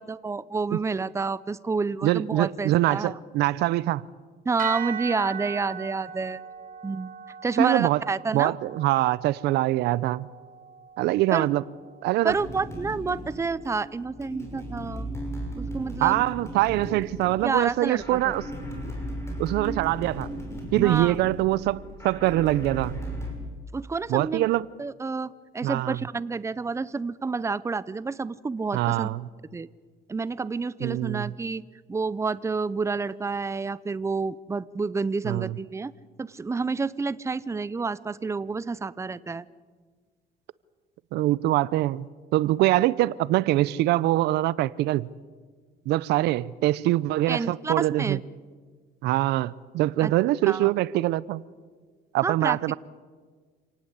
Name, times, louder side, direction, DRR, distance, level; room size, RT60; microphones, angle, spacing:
voice 1, 0.0-3.2 4.4-6.4 6.8-7.1 7.4-8.5 11.3-11.5 12.2-15.1 15.6-16.2 17.4-18.4 20.8-21.1 23.7-24.5 24.8-29.1 29.5-29.7 30.1-31.6 31.9-35.9 36.2-39.5 47.3-48.2 50.0-50.1 50.5-50.7 52.2-52.7, right 4 dB, 15° right, 0.7 m, -29 dB
voice 2, 2.0-4.1 7.6-8.0 8.3-10.3 11.0-11.6 12.0-12.3 16.0-18.4 19.4-20.3 20.7-23.0 24.1-24.7 25.6-26.0 28.7-29.3 30.8-31.3 35.2-35.5 41.1-45.1 45.9-48.2 49.0-51.4 52.1-52.7, right 16 dB, 85° right, 0.6 m, -24 dB
sound 1, 4.6-12.9, right 8 dB, 55° right, 3.9 m, -40 dB
sound 2, 12.3-23.3, right 1 dB, 15° left, 6.2 m, -36 dB
27.5 x 18.5 x 8.1 m
cardioid pair, 110°, 17 cm